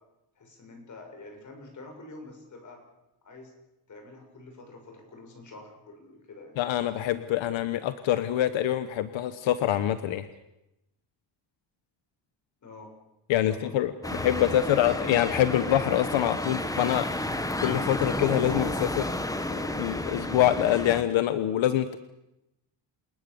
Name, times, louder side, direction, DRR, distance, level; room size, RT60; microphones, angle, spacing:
voice 1, 0.4-2.8 3.2-3.5 3.9-6.6 12.6-12.9 13.5-13.7 14.0-15.0, left 2 dB, 40° left, 4 dB, 6.8 m, -46 dB
voice 2, 6.6-10.3 13.3-17.1 17.6-19.1 19.5-22.0, left 12 dB, 85° left, 11 dB, 1.2 m, -25 dB
sound 1, 14.0-21.0, left 1 dB, 10° left, 1.5 m, -31 dB
28.0 x 19.5 x 7.0 m, 0.88 s
cardioid pair, 130°, 45 cm